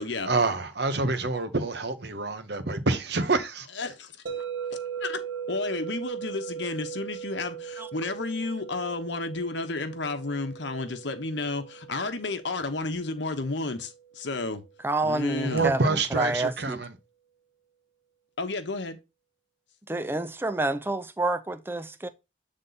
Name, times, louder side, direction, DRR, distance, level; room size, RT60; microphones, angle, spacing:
voice 1, 0.2-3.7 15.4-16.9, right 3 dB, 60° right, 0.9 m, -27 dB
voice 2, 3.7-4.1 4.7-5.2 5.5-14.6 15.0-15.7 18.4-19.0, left 3 dB, 65° left, 1.0 m, -32 dB
sound 1, 4.3-14.3, right 8 dB, 80° right, 1.4 m, -39 dB
voice 3, 14.8-16.9 19.9-22.1, right 2 dB, 10° right, 0.5 m, -28 dB
8.0 x 3.7 x 3.9 m
head